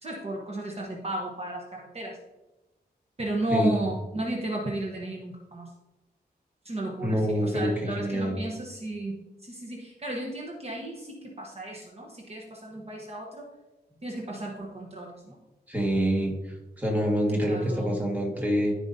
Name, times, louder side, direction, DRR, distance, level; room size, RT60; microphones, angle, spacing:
voice 1, 0.0-2.2 3.2-5.7 6.6-13.5 14.0-15.4 17.5-18.0, right 1 dB, 40° right, -1 dB, 1.1 m, -34 dB
voice 2, 7.0-8.5 15.7-18.8, equal, 10° right, -1 dB, 1.8 m, -26 dB
14.0 x 5.0 x 2.7 m, 1.1 s
wide cardioid pair, 120°, 17 cm